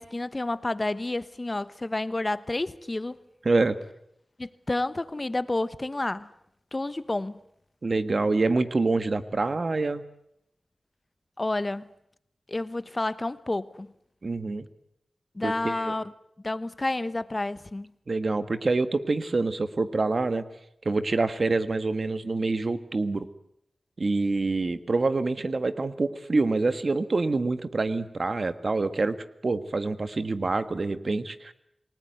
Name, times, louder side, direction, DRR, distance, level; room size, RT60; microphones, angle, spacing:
voice 1, 0.0-3.2 4.4-6.3 6.7-7.3 11.4-11.9 12.5-13.9 15.3-16.0 16.4-17.9, left 2 dB, 30° left, 1.0 m, -30 dB
voice 2, 3.4-3.8 7.8-10.0 14.2-14.6 15.4-15.9 18.1-20.4 20.8-23.3 24.0-29.2 29.4-31.5, right 3 dB, 55° right, 1.6 m, -26 dB
28.5 x 20.0 x 9.4 m
wide cardioid pair, 75°, 0 cm